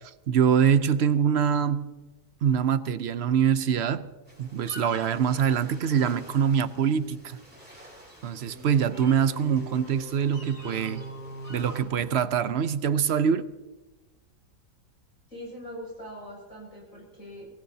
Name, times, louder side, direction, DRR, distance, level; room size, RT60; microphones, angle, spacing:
voice 1, 0.3-1.9 2.4-4.1 4.4-7.4 8.2-11.0 11.5-13.5, right 7 dB, 55° right, 0.8 m, -24 dB
sound 1, 4.3-11.8, right 1 dB, 5° right, 6.3 m, -43 dB
voice 2, 15.3-17.5, equal, 55° left, 7.0 m, -42 dB
26.0 x 19.0 x 2.8 m
omnidirectional pair, 1.7 m